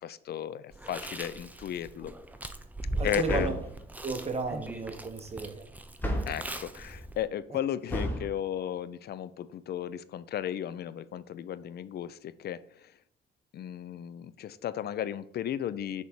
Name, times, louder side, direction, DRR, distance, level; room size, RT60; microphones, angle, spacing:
voice 1, 0.0-2.1 3.0-3.6 6.3-13.0 13.5-16.0, left 10 dB, 55° left, 16 dB, 0.4 m, -35 dB
Chewing mastication, 0.7-7.3, right 1 dB, 10° right, 0.5 m, -40 dB
voice 2, 3.0-3.5 4.0-5.7, right 4 dB, 30° right, 5 dB, 1.0 m, -33 dB
sound 1, 3.2-3.8 6.0-6.5 7.9-8.3, equal, 10° left, 1.0 m, -31 dB
6.3 x 3.5 x 4.4 m, 0.69 s
cardioid pair, 90°, 20 cm